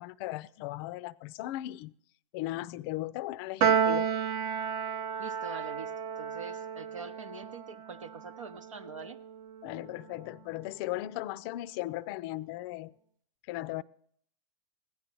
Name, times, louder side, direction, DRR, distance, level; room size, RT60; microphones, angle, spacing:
voice 1, 0.0-1.9 2.3-4.1 9.6-12.9 13.5-13.8, left 16 dB, 50° left, 20 dB, 0.4 m, -37 dB
Piano, 3.6-10.1, right 7 dB, 50° right, 0.6 m, -32 dB
voice 2, 5.2-9.2, right 5 dB, 90° right, 8 dB, 0.8 m, -44 dB
15.0 x 10.0 x 3.0 m, 0.63 s
hypercardioid pair, 100°, 16 cm